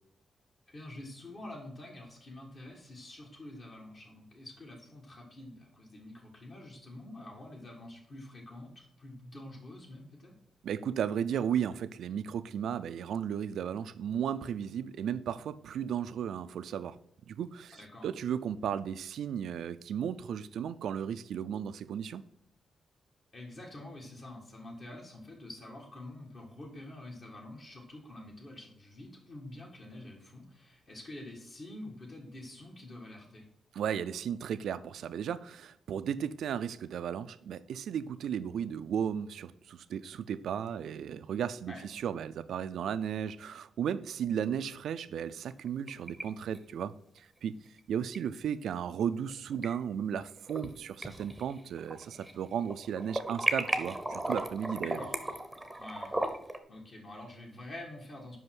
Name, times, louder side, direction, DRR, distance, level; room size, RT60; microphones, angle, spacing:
voice 1, 0.7-10.3 17.7-18.1 23.3-33.5 41.7-41.8 54.8-55.1 55.8-56.2 56.7-58.4, left 1 dB, 45° left, 1.7 m, -47 dB
voice 2, 10.6-17.0 17.3-22.2 33.7-47.5 47.9-55.0, right 8 dB, 85° right, 0.4 m, -35 dB
sound 1, 45.5-46.2 46.5-46.6 48.1-48.2 49.3-49.7 50.2-50.7 51.0-52.4 52.6-56.6, right 1 dB, 5° right, 0.8 m, -35 dB
5.5 x 5.4 x 5.9 m
wide cardioid pair, 130°, 0 cm